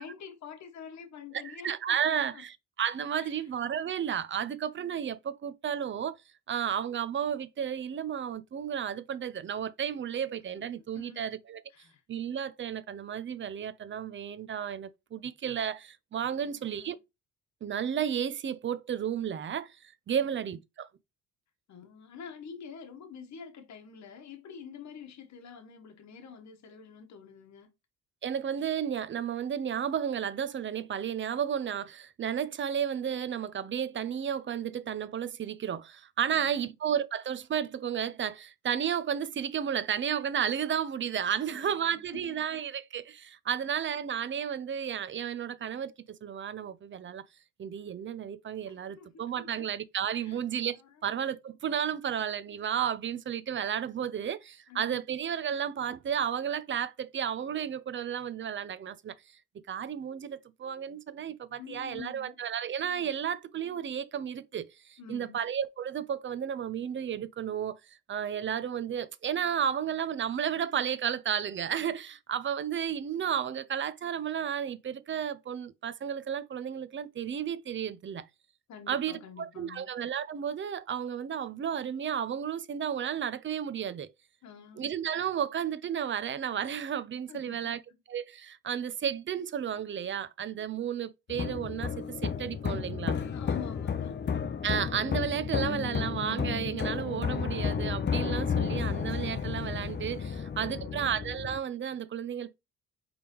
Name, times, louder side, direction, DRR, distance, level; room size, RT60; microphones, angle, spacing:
voice 1, 0.0-2.4 3.1-3.5 10.6-11.4 11.7-12.0 16.4-16.9 20.1-20.3 21.7-27.7 36.3-36.7 41.5-42.4 43.6-43.7 48.7-49.7 50.2-50.4 50.8-51.0 54.7-55.0 61.6-62.4 65.0-65.5 78.7-79.9 84.4-84.9 87.3-87.8 93.0-94.2 100.3-101.0, left 7 dB, 60° left, 1.1 m, -48 dB
voice 2, 1.6-6.2 6.5-11.6 12.1-17.0 17.6-19.8 20.1-20.9 28.2-47.2 47.6-59.2 59.7-67.8 68.1-78.3 78.9-84.1 84.8-87.8 88.1-93.2 94.6-102.5, right 8 dB, 40° right, 0.5 m, -33 dB
sound 1, 91.3-101.6, left 6 dB, 35° left, 0.6 m, -32 dB
5.1 x 3.4 x 3.0 m
cardioid pair, 80°, 32 cm